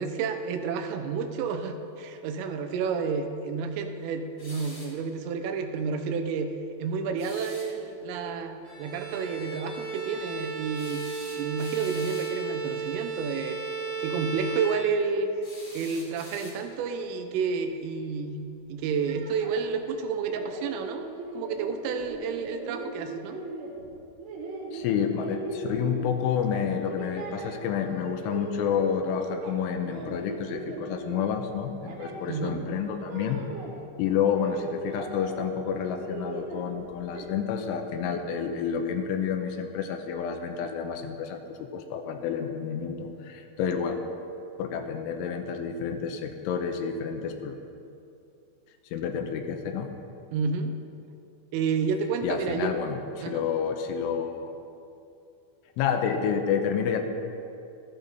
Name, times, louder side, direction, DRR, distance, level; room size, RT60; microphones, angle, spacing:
voice 1, 0.0-6.5 6.8-11.0 11.4-13.6 14.0-15.3 15.7-18.4 18.7-21.1 21.3-23.4 32.3-32.6 50.3-50.8 51.5-52.7 53.2-53.5, right 5 dB, 85° right, 6 dB, 3.4 m, -30 dB
sound 1, 4.4-5.0 7.2-7.7 10.7-12.4 15.4-16.9, left 1 dB, 55° left, 0.9 m, -46 dB
Bowed string instrument, 8.6-15.4, right 5 dB, 5° right, 0.8 m, -34 dB
sound 2, 18.9-26.5 26.8-29.0 29.3-33.7 34.0-35.5 35.8-37.3, right 3 dB, 65° right, 3.3 m, -39 dB
voice 2, 24.7-33.4 34.0-44.0 44.6-47.6 48.9-49.9 52.2-54.5 55.8-57.0, left 7 dB, 85° left, 5 dB, 3.2 m, -29 dB
14.0 x 12.0 x 4.0 m, 2.6 s
omnidirectional pair, 5.7 m